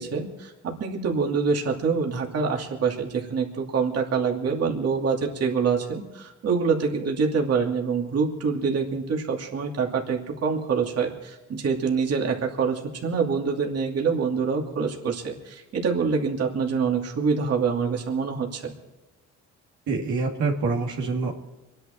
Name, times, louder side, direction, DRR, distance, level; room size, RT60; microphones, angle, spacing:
voice 1, 0.0-18.7, right 5 dB, 55° right, 0 dB, 2.7 m, -25 dB
voice 2, 19.9-21.3, right 4 dB, 70° right, -1 dB, 2.5 m, -26 dB
26.0 x 10.5 x 4.5 m, 1.1 s
cardioid pair, 90°, 30 cm